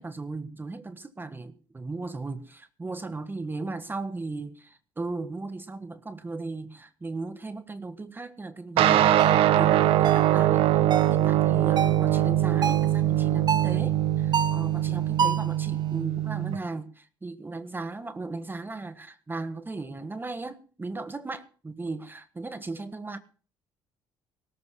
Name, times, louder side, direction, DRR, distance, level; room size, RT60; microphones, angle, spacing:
voice 1, 0.0-23.2, right 3 dB, 20° right, 10 dB, 1.5 m, -37 dB
sound 1, 8.8-16.6, right 13 dB, 70° right, 1.2 m, -22 dB
sound 2, 9.2-9.4 10.0-10.3 10.9-11.2 11.8-12.0 12.6-12.9 13.5-13.8 14.3-14.7 15.2-15.5, right 6 dB, 45° right, 1.1 m, -27 dB
21.5 x 18.0 x 2.3 m, 0.39 s
supercardioid pair, 75°, 10 cm